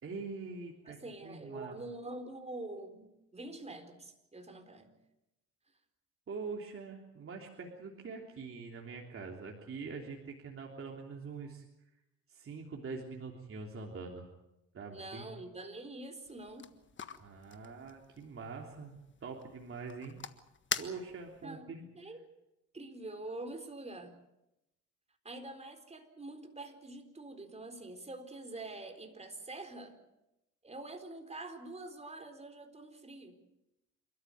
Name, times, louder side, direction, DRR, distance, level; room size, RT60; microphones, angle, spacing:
voice 1, 0.0-1.8 6.3-11.6 12.3-14.3 14.7-15.3 17.2-18.9 19.2-20.2 20.8-21.8, right 4 dB, 45° right, 0 dB, 3.3 m, -44 dB
voice 2, 0.8-5.0 14.9-16.7 21.4-22.3 22.7-24.1 25.2-30.0 30.6-33.4, right 2 dB, 20° right, 6 dB, 4.1 m, -45 dB
sound 1, 16.2-21.5, left 6 dB, 40° left, 1.5 m, -44 dB
28.5 x 13.0 x 9.4 m, 0.91 s
cardioid pair, 90°, 30 cm